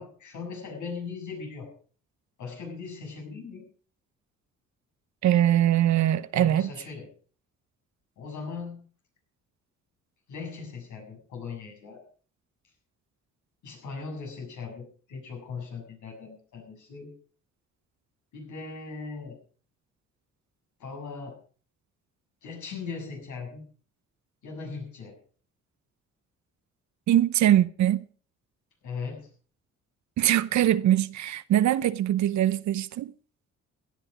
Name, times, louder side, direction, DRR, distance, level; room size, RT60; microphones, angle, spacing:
voice 1, 0.0-1.7 2.4-3.7 6.3-7.1 8.2-8.8 10.3-12.1 13.6-17.1 18.3-19.4 20.8-21.4 22.4-23.6 24.4-25.2 28.8-29.3, left 5 dB, 75° left, 7.3 m, -39 dB
voice 2, 5.2-6.7 27.1-28.0 30.2-33.1, right 12 dB, 65° right, 0.8 m, -22 dB
16.5 x 11.0 x 5.0 m
cardioid pair, 90°, 30 cm